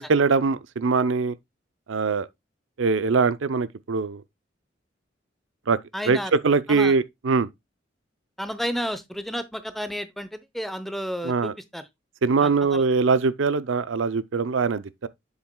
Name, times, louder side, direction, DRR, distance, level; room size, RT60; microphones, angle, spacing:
voice 1, 0.0-1.3 1.9-2.3 2.8-4.2 5.7-5.8 6.1-7.5 11.2-11.5 12.2-15.1, right 4 dB, 85° right, 0.5 m, -22 dB
voice 2, 5.9-6.3 6.7-6.9 8.4-11.9 12.4-12.8, equal, ahead, 0.7 m, -32 dB
7.3 x 7.3 x 2.2 m
head